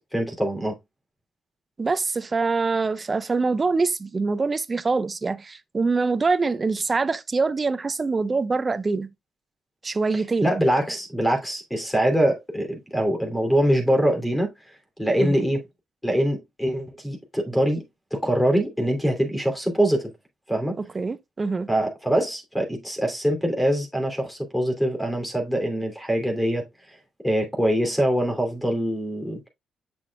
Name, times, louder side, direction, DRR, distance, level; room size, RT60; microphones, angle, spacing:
voice 1, 0.1-0.8 10.1-14.5 15.0-15.6 16.0-17.8 18.1-20.1 20.5-20.8 21.7-27.0 27.2-29.4, equal, 5° left, 2.8 m, -24 dB
voice 2, 1.8-9.1 9.8-10.6 15.2-15.5 20.8-21.7, right 4 dB, 30° right, 0.8 m, -24 dB
7.3 x 7.0 x 2.3 m
cardioid pair, 90°, 0 cm